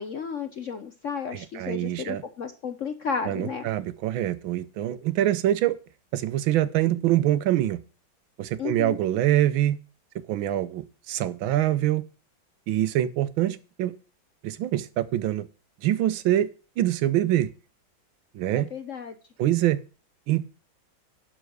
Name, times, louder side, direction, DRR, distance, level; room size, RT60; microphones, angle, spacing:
voice 1, 0.0-3.6 8.6-9.0 18.6-19.1, left 6 dB, 60° left, 8 dB, 0.8 m, -33 dB
voice 2, 1.3-2.2 3.2-5.8 6.1-7.8 8.4-9.8 10.3-12.0 12.7-13.9 14.4-15.5 15.8-16.5 16.8-17.5 18.3-18.7 19.4-19.8 20.3-20.5, right 13 dB, 80° right, 15 dB, 1.5 m, -24 dB
11.5 x 4.6 x 6.3 m, 0.34 s
omnidirectional pair, 2.2 m